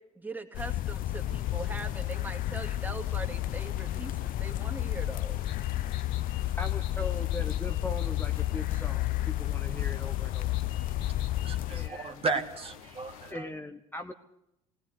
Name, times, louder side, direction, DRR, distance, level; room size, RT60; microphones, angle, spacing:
voice 1, 0.2-5.5, right 2 dB, 10° right, 5 dB, 2.5 m, -41 dB
sound 1, 0.5-11.9, left 14 dB, 55° left, 0.6 m, -31 dB
sound 2, 1.2-13.3, left 7 dB, 90° left, 1.9 m, -50 dB
sound 3, 5.4-8.6 10.3-11.6, left 10 dB, 70° left, 1.8 m, -51 dB
voice 2, 6.6-10.5 11.7-12.2 13.3-14.1, left 2 dB, 10° left, 5 dB, 1.2 m, -40 dB
voice 3, 11.4-13.5, right 3 dB, 30° right, 5 dB, 2.1 m, -34 dB
18.0 x 17.0 x 8.5 m, 0.83 s
supercardioid pair, 85°, 18 cm